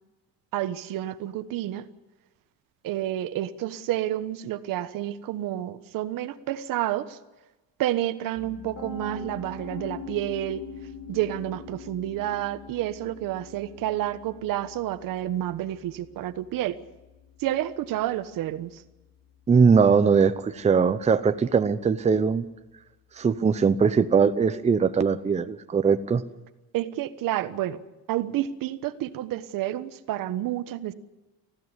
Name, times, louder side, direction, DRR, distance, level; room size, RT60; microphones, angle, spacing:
voice 1, 0.5-1.8 2.8-7.2 7.8-10.6 11.1-16.8 17.4-18.8 26.7-27.8 28.1-30.9, right 13 dB, 65° right, 12 dB, 1.3 m, -29 dB
Piano, 8.4-20.3, left 5 dB, 45° left, 5.5 m, -44 dB
voice 2, 19.5-22.5 23.1-26.2, right 5 dB, 20° right, 10 dB, 0.8 m, -21 dB
20.0 x 15.5 x 9.7 m, 1.1 s
cardioid pair, 130°, 36 cm